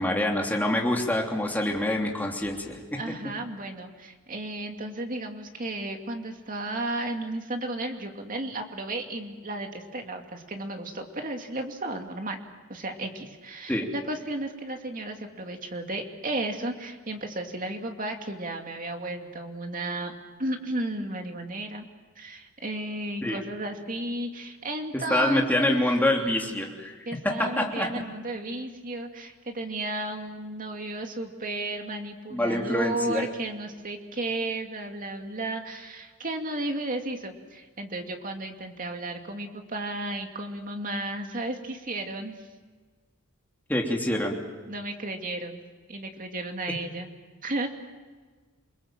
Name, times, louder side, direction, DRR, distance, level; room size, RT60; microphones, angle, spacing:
voice 1, 0.0-3.0 13.7-13.9 23.2-23.4 25.1-26.9 27.2-27.9 32.3-33.2 43.7-44.3, left 1 dB, 10° left, 0 dB, 3.1 m, -26 dB
voice 2, 3.0-12.4 12.7-20.1 20.4-21.9 22.2-26.1 27.1-42.4 44.7-45.6 45.9-47.1 47.4-47.7, right 2 dB, 40° right, 4 dB, 2.6 m, -33 dB
28.5 x 21.0 x 7.6 m, 1.5 s
head